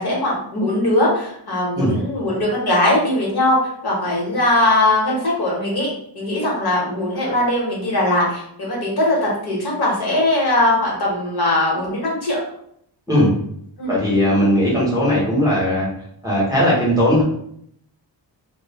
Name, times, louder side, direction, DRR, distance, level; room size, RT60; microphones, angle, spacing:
voice 1, 0.0-5.9 6.1-12.4 13.8-14.0, left 1 dB, 60° left, -3 dB, 1.0 m, -20 dB
voice 2, 13.9-15.9 16.2-17.2, equal, 10° right, -8 dB, 0.9 m, -18 dB
3.1 x 2.1 x 2.2 m, 0.70 s
wide cardioid pair, 115°, 44 cm